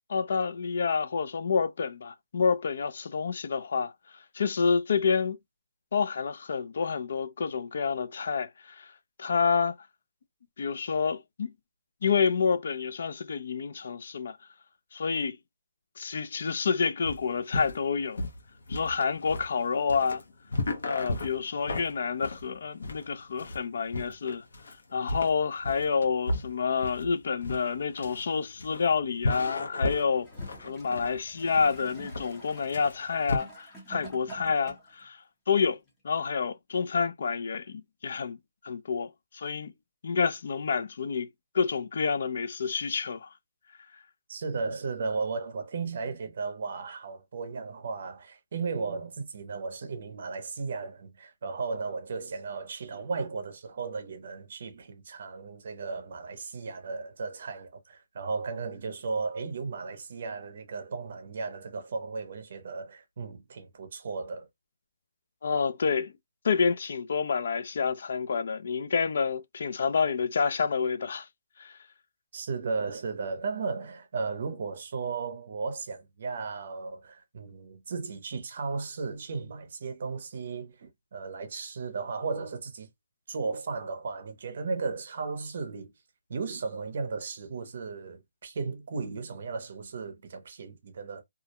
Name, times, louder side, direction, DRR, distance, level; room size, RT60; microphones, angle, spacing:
voice 1, 0.1-5.4 5.9-8.9 9.2-9.7 10.6-11.5 12.0-14.4 14.9-15.4 16.0-18.2 18.7-20.2 20.8-24.4 24.9-30.3 30.7-35.8 36.0-38.4 38.6-39.7 40.0-41.3 41.5-43.3 65.4-66.1 66.4-71.3 71.6-71.8, left 5 dB, 50° left, 0.3 m, -28 dB
sound 1, 17.1-33.4, left 2 dB, 75° left, 0.7 m, -35 dB
Gurgling / Toilet flush, 30.2-35.0 35.9-36.0, right 1 dB, 10° left, 0.7 m, -48 dB
voice 2, 44.3-64.5 72.3-82.9 83.3-85.9 86.3-91.2, right 4 dB, 45° right, 0.6 m, -35 dB
2.4 x 2.0 x 2.8 m
hypercardioid pair, 175°, 0 cm